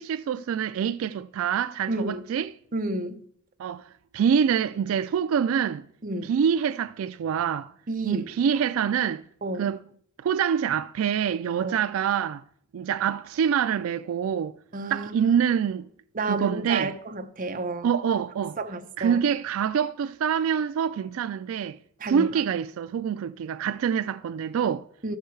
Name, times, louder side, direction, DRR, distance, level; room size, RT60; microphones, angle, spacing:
voice 1, 0.0-2.5 3.6-5.9 6.2-7.7 8.0-9.2 9.6-9.8 10.2-12.4 12.7-14.5 14.9-15.9 16.2-16.9 17.8-18.6 19.0-21.8 22.0-24.9, right 8 dB, 85° right, 0.3 m, -26 dB
voice 2, 1.9-2.2 2.7-3.2 6.0-6.3 7.9-8.3 9.4-9.7 11.6-11.8 14.7-15.4 16.1-17.9 18.6-19.2 22.0-22.3 25.0-25.2, right 2 dB, 40° right, 0.8 m, -31 dB
13.0 x 6.5 x 4.6 m
head